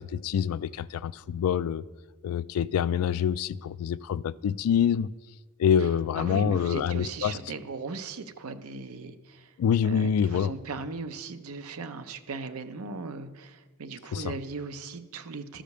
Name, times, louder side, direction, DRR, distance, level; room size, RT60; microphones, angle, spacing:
voice 1, 0.0-1.8 2.2-5.1 5.6-7.4 9.6-10.5 14.1-14.3, left 8 dB, 85° left, 17 dB, 0.3 m, -26 dB
voice 2, 6.2-9.5 9.8-15.6, right 4 dB, 80° right, 9 dB, 0.7 m, -38 dB
13.0 x 5.0 x 6.6 m, 1.3 s
head